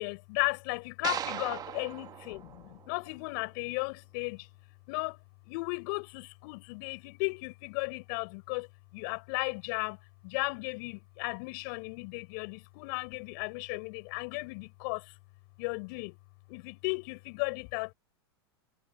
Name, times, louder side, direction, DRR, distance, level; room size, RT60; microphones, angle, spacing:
voice 1, 0.0-4.5 4.9-5.2 5.5-8.7 8.9-10.0 10.2-15.0 15.6-16.2 16.5-17.9, left 31 dB, 55° left, 6.3 m, -35 dB
sound 1, 1.0-3.4, right 10 dB, 30° right, 1.3 m, -39 dB
hypercardioid pair, 110°, 13 cm